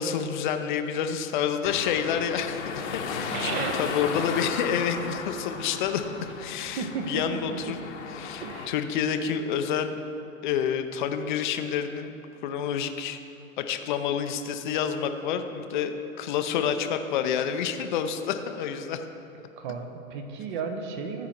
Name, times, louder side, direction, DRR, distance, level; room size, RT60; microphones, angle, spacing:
voice 1, 0.0-3.5 3.8-6.1 6.4-7.8 8.2-9.9 10.4-12.1 12.4-13.2 13.6-19.1, left 8 dB, 35° left, 8 dB, 0.6 m, -28 dB
sound 1, 1.6-8.7, left 5 dB, 55° left, 1.0 m, -35 dB
voice 2, 3.1-4.0 5.9-6.0 6.8-7.8 8.4-8.9 19.6-21.3, right 5 dB, 35° right, 5 dB, 0.9 m, -34 dB
14.0 x 4.7 x 4.4 m, 2.8 s
hypercardioid pair, 125°, 42 cm